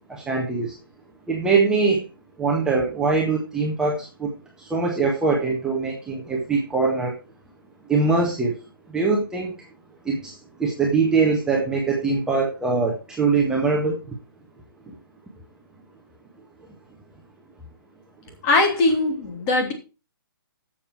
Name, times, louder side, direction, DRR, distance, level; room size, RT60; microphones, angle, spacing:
voice 1, 0.1-0.7 1.3-2.0 2.4-4.3 4.6-7.1 7.9-8.6 8.9-9.6 10.0-14.1, right 4 dB, 5° right, 1.6 m, -22 dB
voice 2, 18.4-19.7, left 2 dB, 25° left, 2.9 m, -20 dB
11.5 x 7.6 x 4.6 m
figure-of-eight pair, 130°, 12 cm